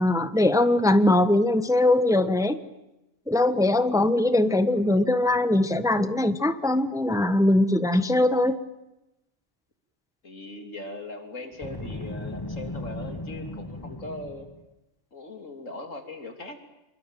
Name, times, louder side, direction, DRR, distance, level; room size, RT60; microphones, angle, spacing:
voice 1, 0.0-2.6 3.3-8.6, left 1 dB, 5° right, 11 dB, 1.1 m, -21 dB
voice 2, 10.2-14.5 15.1-16.6, left 2 dB, 85° left, 6 dB, 3.6 m, -39 dB
Boom, 11.5-14.7, left 2 dB, 20° left, 1.4 m, -36 dB
27.5 x 22.5 x 9.1 m, 0.95 s
omnidirectional pair, 1.3 m